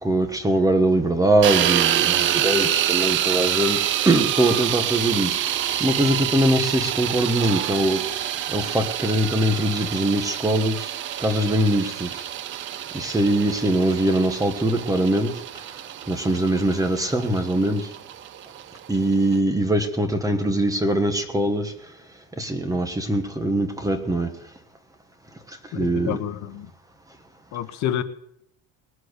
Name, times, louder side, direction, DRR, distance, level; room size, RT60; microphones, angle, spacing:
voice 1, 0.0-5.5 5.8-8.0 8.5-10.9 11.2-12.2 12.9-15.3 16.1-17.9 18.9-21.7 22.4-24.3 25.7-26.2, right 1 dB, 10° right, 7 dB, 1.4 m, -22 dB
sound 1, 1.4-19.4, right 11 dB, 35° right, 0.5 m, -27 dB
voice 2, 25.7-26.7 27.5-28.0, left 11 dB, 50° left, 10 dB, 1.1 m, -28 dB
20.5 x 7.9 x 8.1 m, 0.74 s
cardioid pair, 145°, 37 cm